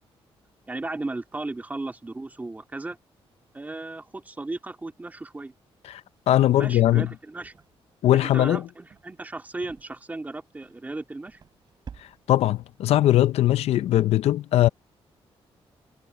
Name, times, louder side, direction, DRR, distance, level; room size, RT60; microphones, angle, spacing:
voice 1, 0.7-3.0 3.5-5.5 6.6-7.5 8.2-11.4, right 2 dB, 15° right, 2.4 m, -35 dB
sound 1, 6.1-7.9 8.2-8.5 8.9-9.2 9.6-10.2 10.4-10.8 11.3-12.4 12.8-13.0 13.3-14.0, right 6 dB, 45° right, 3.5 m, -50 dB
voice 2, 6.3-7.1 8.0-8.7 12.0-14.7, left 13 dB, 85° left, 0.6 m, -20 dB
cardioid pair, 135°, 10 cm